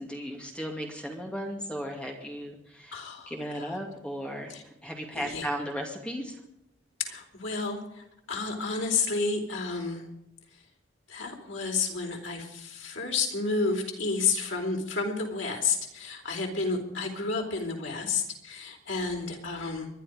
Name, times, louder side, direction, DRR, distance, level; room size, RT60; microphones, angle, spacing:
voice 1, 0.0-2.9 3.3-6.4, equal, 5° left, 1 dB, 2.3 m, -36 dB
voice 2, 2.9-3.8 4.5-4.6 5.1-5.5 7.0-10.1 11.1-19.9, left 4 dB, 90° left, 1 dB, 4.0 m, -31 dB
24.0 x 11.0 x 5.1 m, 0.82 s
head